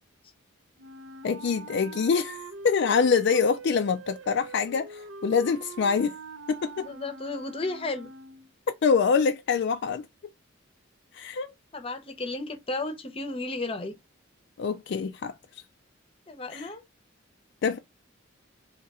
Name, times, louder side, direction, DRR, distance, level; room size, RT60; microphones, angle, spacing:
Wind instrument woodwind instrument, 0.8-8.5, right 3 dB, 65° right, 0.6 m, -43 dB
voice 1, 1.2-6.1 6.5-6.9 8.7-10.0 11.1-11.5 14.6-15.3 16.5-16.7 17.6-17.8, left 5 dB, 55° left, 0.3 m, -25 dB
voice 2, 6.8-8.1 11.7-13.9 16.3-16.8, left 2 dB, 25° left, 0.7 m, -33 dB
3.5 x 2.8 x 4.1 m
head